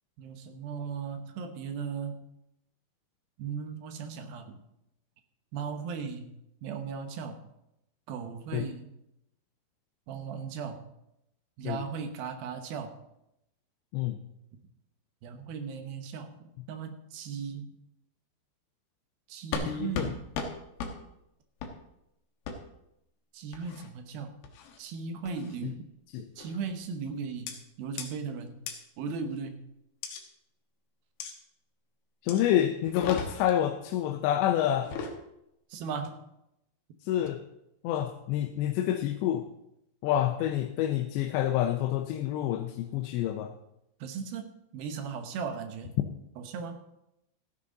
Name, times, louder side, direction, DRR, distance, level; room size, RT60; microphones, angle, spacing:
voice 1, 0.2-2.2 3.4-4.6 5.5-6.3 6.6-7.4 8.1-8.9 10.1-10.9 11.6-13.0 15.2-17.7 19.3-20.2 23.3-24.3 24.8-25.9 26.4-28.6 29.0-29.6 35.7-36.3 44.0-45.9 46.4-46.8, right 6 dB, 70° right, 7 dB, 2.6 m, -37 dB
sound 1, 19.5-19.7 19.9-20.1 20.3-20.5 20.8-20.9 21.6-21.7 22.5-22.6 23.5-23.9 24.4-24.8 25.3-25.6 26.4-26.6 27.5-27.6 28.0-28.1 28.7-28.8 30.0-30.2 31.2-31.3 32.3-32.4 32.8-33.6 34.7-35.2, left 5 dB, 70° left, 3.0 m, -36 dB
voice 2, 19.7-20.1 25.6-25.7 26.1-26.3 32.2-34.9 37.0-37.4 37.8-39.5 40.0-43.5, left 11 dB, 90° left, 5 dB, 2.9 m, -28 dB
14.0 x 10.5 x 3.8 m, 0.84 s
omnidirectional pair, 4.9 m